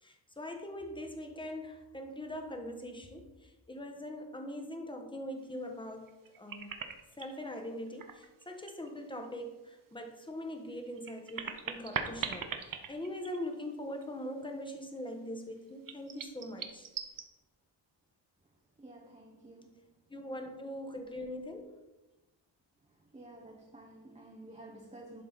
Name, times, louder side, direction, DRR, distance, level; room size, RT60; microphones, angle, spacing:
voice 1, 0.0-6.7 7.1-16.9 20.1-21.7, left 1 dB, 10° left, 1.1 m, -42 dB
sound 1, 6.1-7.4 7.9-8.9 9.2-9.3 10.8-13.7 14.0-14.1 15.9-17.2, right 6 dB, 45° right, 0.9 m, -40 dB
voice 2, 18.8-19.7 23.1-25.2, right 1 dB, 15° right, 0.9 m, -51 dB
11.5 x 4.7 x 4.0 m
wide cardioid pair, 115°, 45 cm